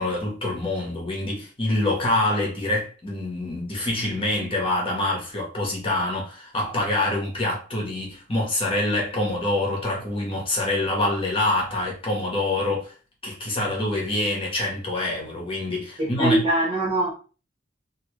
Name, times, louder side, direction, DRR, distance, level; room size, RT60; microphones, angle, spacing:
voice 1, 0.0-12.9 13.2-16.4, left 2 dB, 30° left, 1.1 m, -26 dB
voice 2, 16.0-17.1, right 1 dB, 30° right, 1.1 m, -22 dB
3.0 x 2.9 x 3.1 m
head